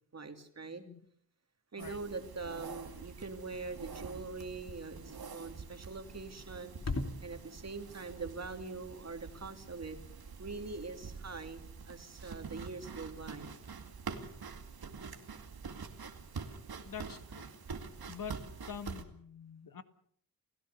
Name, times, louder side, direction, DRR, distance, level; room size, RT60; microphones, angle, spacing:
voice 1, 0.1-0.8 1.7-6.8 7.2-10.0 10.4-13.5, right 3 dB, 45° right, 6 dB, 2.7 m, -43 dB
sound 1, 1.8-19.0, right 5 dB, 90° right, 2.3 m, -46 dB
sound 2, 2.8-11.7, left 2 dB, 45° left, 2.8 m, -47 dB
voice 2, 16.8-17.5 18.1-18.4 18.7-19.8, left 7 dB, 65° left, 11 dB, 1.7 m, -45 dB
29.5 x 16.5 x 6.8 m, 0.63 s
wide cardioid pair, 115°, 36 cm